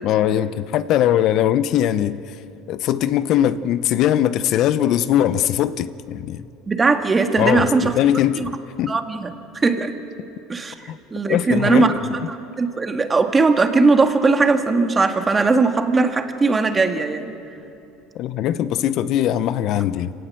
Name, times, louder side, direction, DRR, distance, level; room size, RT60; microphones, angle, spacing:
voice 1, 0.0-2.3 2.7-6.5 7.4-8.5 8.8-9.0 10.9-11.0 11.3-11.9 18.1-20.1, left 11 dB, 55° left, 14 dB, 0.7 m, -20 dB
voice 2, 6.7-8.0 8.4-8.5 8.9-10.0 10.5-12.0 12.3-17.3, right 3 dB, 20° right, 6 dB, 1.8 m, -19 dB
25.5 x 18.0 x 7.7 m, 2.8 s
supercardioid pair, 105°, 0 cm